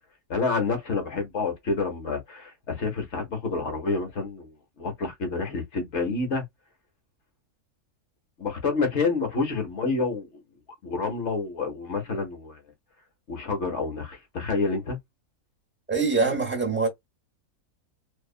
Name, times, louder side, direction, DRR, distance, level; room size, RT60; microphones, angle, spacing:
voice 1, 0.3-4.5 4.8-6.4 8.4-10.4 10.8-12.6 13.3-15.0, left 4 dB, 55° left, 1.2 m, -28 dB
voice 2, 15.9-16.9, right 4 dB, 10° right, 0.9 m, -24 dB
2.7 x 2.3 x 2.3 m
omnidirectional pair, 1.5 m